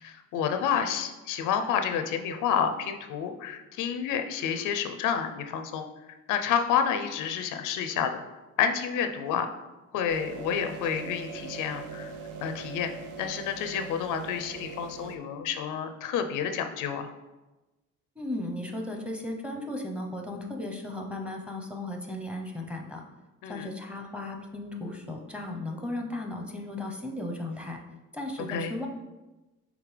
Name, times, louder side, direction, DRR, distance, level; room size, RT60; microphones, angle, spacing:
voice 1, 0.0-5.8 6.3-8.2 8.6-9.5 9.9-12.1 12.4-17.1 23.4-23.7 28.5-28.7, left 8 dB, 90° left, 7 dB, 0.5 m, -29 dB
sound 1, 10.1-15.2, right 4 dB, 80° right, 0.6 m, -41 dB
voice 2, 18.2-23.0 23.5-27.8 28.1-28.9, left 1 dB, 5° right, 2 dB, 0.7 m, -35 dB
5.0 x 3.2 x 3.2 m, 1.1 s
cardioid pair, 90°, 30 cm